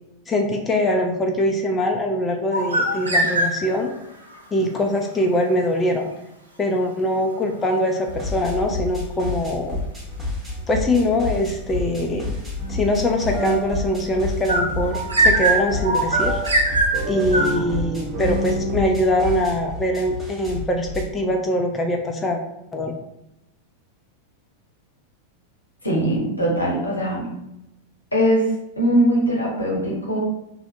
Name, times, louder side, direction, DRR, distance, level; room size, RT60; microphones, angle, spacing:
voice 1, 0.3-3.9 4.5-6.1 6.6-9.8 10.7-12.3 12.7-16.4 17.1-22.4 22.7-22.9, left 1 dB, 15° left, 3 dB, 0.3 m, -22 dB
sound 1, 2.5-3.9 14.5-17.6, right 2 dB, 75° right, 0.4 m, -21 dB
sound 2, 8.1-21.0, left 2 dB, 10° right, 0.9 m, -30 dB
sound 3, 12.6-18.8, right 2 dB, 40° right, 0.8 m, -31 dB
voice 2, 25.8-27.3 28.1-30.2, equal, 85° left, -3 dB, 0.8 m, -21 dB
2.7 x 2.1 x 2.6 m, 0.86 s
figure-of-eight pair, 90°, 0 cm